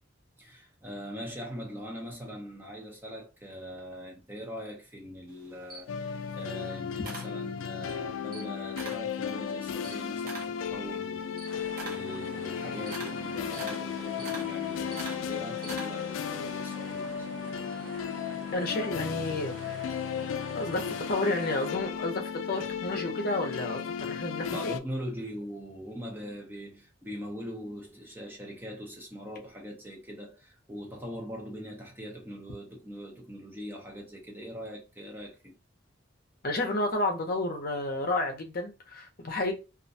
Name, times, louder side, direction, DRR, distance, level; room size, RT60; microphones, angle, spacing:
voice 1, 0.4-17.3 24.5-35.6, equal, 10° right, 0.5 m, -42 dB
Camera, 5.3-7.9 8.2-9.1 9.5-16.2, right 3 dB, 50° right, 0.7 m, -44 dB
sound 1, 5.9-24.8, left 7 dB, 90° left, 0.3 m, -35 dB
sound 2, 11.4-21.7, right 5 dB, 80° right, 0.5 m, -46 dB
voice 2, 18.5-19.9 20.5-24.8 36.4-39.5, left 2 dB, 50° left, 0.6 m, -31 dB
2.4 x 2.1 x 2.6 m
head